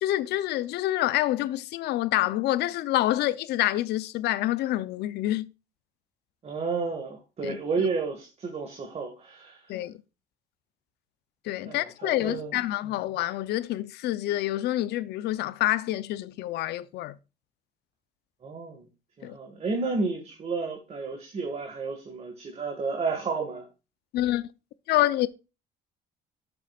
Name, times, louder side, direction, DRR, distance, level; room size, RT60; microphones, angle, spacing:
voice 1, 0.0-5.5 7.4-7.6 9.7-10.0 11.4-17.2 19.2-19.4 24.1-24.5 24.9-25.3, left 15 dB, 75° left, 0.6 m, -27 dB
voice 2, 6.4-9.7 11.6-12.6 18.4-18.9 19.2-23.7, right 4 dB, 40° right, 1.8 m, -31 dB
13.0 x 7.0 x 2.4 m
cardioid pair, 110°, 17 cm